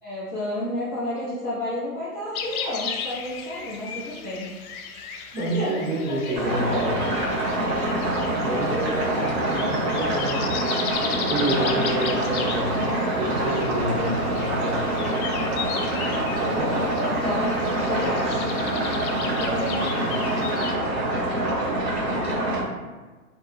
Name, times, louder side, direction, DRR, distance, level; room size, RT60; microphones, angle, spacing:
voice 1, 0.0-4.5 5.6-5.8 6.1-7.0 11.3-11.7 16.7-17.5 17.8-18.4, left 1 dB, 5° left, -21 dB, 0.4 m, -31 dB
sound 1, 2.3-20.7, left 7 dB, 70° left, 0.5 m, -36 dB
voice 2, 5.3-7.0 8.3-10.4 11.2-12.7 13.2-14.9 16.4-16.8 19.4-20.3, right 1 dB, 85° right, -3 dB, 1.1 m, -28 dB
sound 2, 6.3-22.6, right 1 dB, 45° right, 0.7 m, -25 dB
2.5 x 2.2 x 2.4 m, 1.3 s
hypercardioid pair, 155°, 46 cm